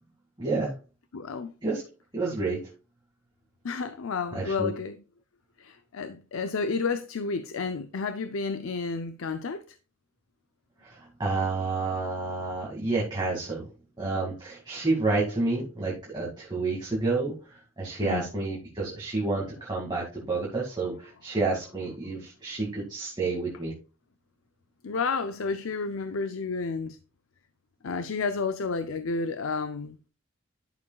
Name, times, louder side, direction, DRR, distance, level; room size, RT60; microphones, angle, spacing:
voice 1, 0.4-0.7 1.6-1.8 2.1-2.7 4.3-4.7 10.8-13.6 14.0-23.7, right 3 dB, 20° right, 2.2 m, -29 dB
voice 2, 1.1-1.5 3.6-5.0 5.6-9.8 18.0-18.3 24.8-27.0 27.8-30.0, left 4 dB, 80° left, 0.6 m, -31 dB
11.5 x 6.9 x 2.4 m
head